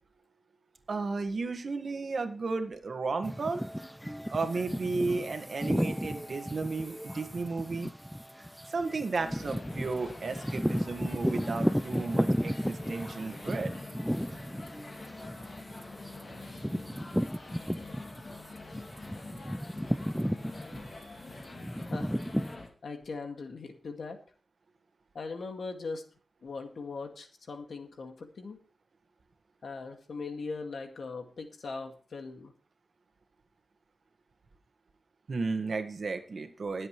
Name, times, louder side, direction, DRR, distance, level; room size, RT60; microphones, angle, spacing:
voice 1, 0.9-3.6 4.3-7.9 8.7-13.7 21.0-21.2 35.3-36.9, right 3 dB, 65° right, 6 dB, 1.6 m, -34 dB
sound 1, 3.2-18.4 18.7-22.5, equal, ahead, 0.4 m, -34 dB
sound 2, 9.2-22.7, left 2 dB, 55° left, 2.7 m, -46 dB
voice 2, 21.8-22.2 22.8-24.2 25.1-26.0 26.4-28.6 29.6-32.5, left 4 dB, 90° left, 4 dB, 2.1 m, -40 dB
21.0 x 7.8 x 3.2 m, 0.40 s
wide cardioid pair, 120°, 0 cm